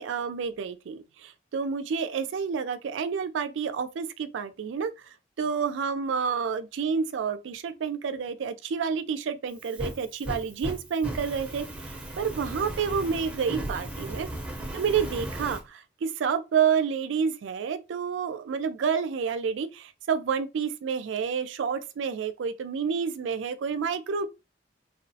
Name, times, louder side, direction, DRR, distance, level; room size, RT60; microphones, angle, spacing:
voice 1, 0.0-14.3 14.7-24.3, right 6 dB, 85° right, 0.4 m, -29 dB
Fire, 9.5-15.6, right 1 dB, 5° right, 0.6 m, -36 dB
2.9 x 2.0 x 2.6 m
head